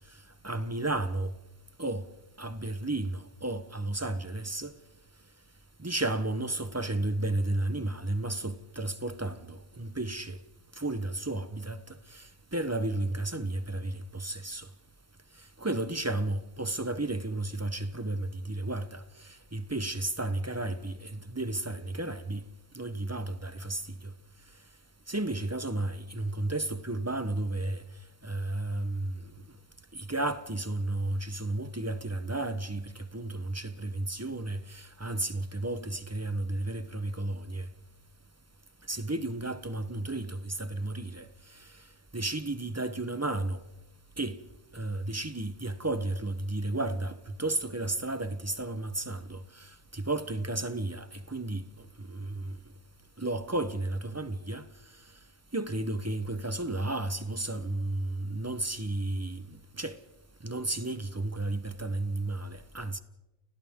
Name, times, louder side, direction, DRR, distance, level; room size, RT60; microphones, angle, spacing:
voice 1, 0.4-1.3 1.8-2.1 2.4-4.7 5.8-10.4 10.8-11.8 12.1-12.2 12.5-14.7 15.6-19.0 19.5-22.4 22.7-24.1 25.1-27.8 28.2-29.2 29.9-37.7 38.9-41.3 42.1-43.6 44.2-44.4 44.7-51.6 52.0-52.6 53.2-54.6 55.5-60.0 60.4-63.0, right 2 dB, 15° right, 0.8 m, -33 dB
30.0 x 29.5 x 3.7 m
omnidirectional pair, 1.2 m